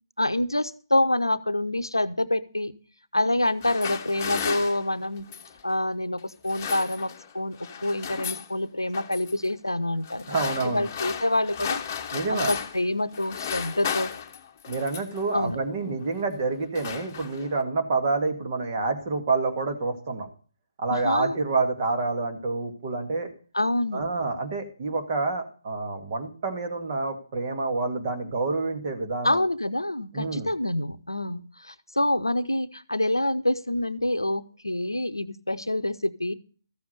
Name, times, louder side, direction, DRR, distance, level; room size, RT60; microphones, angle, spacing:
voice 1, 0.2-2.7 3.1-5.3 5.6-11.8 12.3-14.1 15.3-15.6 20.9-21.4 23.5-24.1 29.2-36.3, left 1 dB, 85° left, 13 dB, 0.8 m, -27 dB
sound 1, 3.4-5.6 6.3-7.3 7.6-8.5 8.9-9.3 10.0-12.9 13.1-15.2 16.0-16.2 16.5-17.6, left 7 dB, 30° left, 1.2 m, -35 dB
voice 2, 10.3-10.9 12.1-12.5 14.7-20.3 20.8-23.3 23.9-29.4 30.1-30.5, right 3 dB, 35° right, 5 dB, 2.2 m, -28 dB
14.0 x 7.0 x 6.7 m, 0.41 s
figure-of-eight pair, 140°, 2 cm